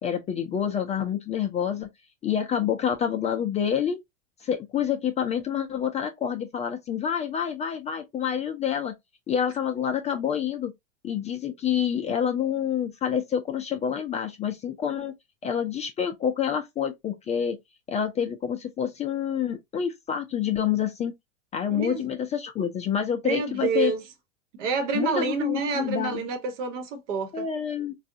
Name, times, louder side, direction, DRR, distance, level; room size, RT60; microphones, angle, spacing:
voice 1, 0.0-1.9 2.2-4.0 4.4-8.9 9.3-10.7 11.0-15.1 15.4-17.6 17.9-21.1 21.5-23.9 24.9-26.2 27.3-27.9, left 8 dB, 20° left, 0.4 m, -27 dB
voice 2, 21.7-22.0 23.2-24.0 24.5-27.5, right 5 dB, 65° right, 1.1 m, -28 dB
3.9 x 2.3 x 2.6 m
hypercardioid pair, 100°, 38 cm